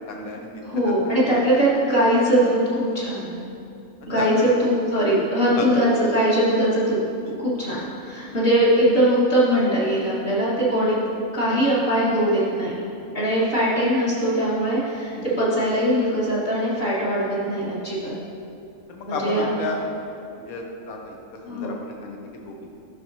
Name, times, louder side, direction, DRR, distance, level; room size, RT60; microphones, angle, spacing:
voice 1, 0.1-0.5 1.3-1.4 4.2-4.5 5.6-5.8 7.3-7.4 7.7-7.8 15.1-15.3 18.9-19.8 20.5-21.2 21.5-22.2 22.4-22.5, left 3 dB, 85° left, 1 dB, 1.3 m, -32 dB
voice 2, 0.6-3.3 4.1-7.0 7.4-11.0 11.3-12.8 13.1-18.1 19.1-19.5 21.4-21.7, right 1 dB, 45° left, -9 dB, 1.8 m, -21 dB
10.5 x 6.0 x 2.7 m, 2.6 s
omnidirectional pair, 1.5 m